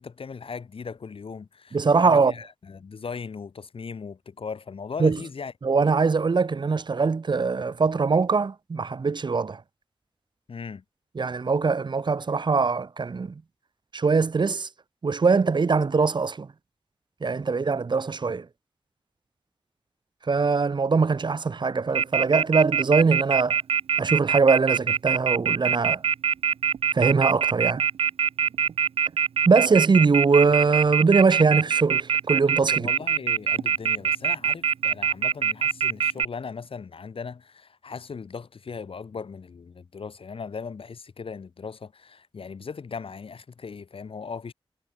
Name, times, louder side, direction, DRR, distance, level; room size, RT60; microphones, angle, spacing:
voice 1, 0.0-5.5 10.5-10.8 32.7-44.5, left 5 dB, 70° left, 1.2 m, -38 dB
voice 2, 1.7-2.3 5.0-5.2 5.6-9.6 11.1-13.3 13.9-14.7 15.0-16.5 17.2-18.5 20.3-23.6 24.0-26.0 26.9-27.8 29.5-32.9, right 4 dB, 50° right, 0.8 m, -22 dB
Telephone, 21.9-36.2, right 7 dB, 80° right, 0.4 m, -23 dB
wide cardioid pair, 80°, 10 cm